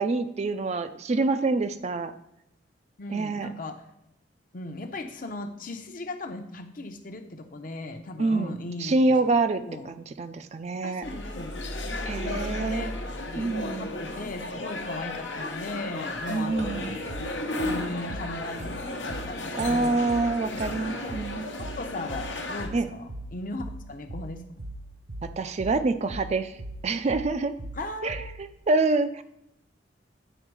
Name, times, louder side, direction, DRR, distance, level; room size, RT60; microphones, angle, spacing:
voice 1, 0.0-2.1 3.1-3.5 8.2-11.0 12.1-12.9 13.4-13.9 16.3-17.0 19.6-21.5 22.7-22.9 25.2-26.6 26.8-27.5 28.0-29.2, right 3 dB, 35° right, 10 dB, 0.4 m, -26 dB
voice 2, 3.0-3.8 4.5-9.3 9.7-9.9 10.8-11.6 12.2-13.0 13.3-13.5 13.7-17.1 17.6-18.7 19.0-20.7 21.8-24.4 27.7-28.3, left 2 dB, 50° left, 6 dB, 0.7 m, -37 dB
sound 1, 11.0-22.7, left 2 dB, 90° left, 1.0 m, -34 dB
sound 2, 16.6-28.6, right 1 dB, 70° right, 0.9 m, -41 dB
9.1 x 4.4 x 4.7 m, 0.82 s
head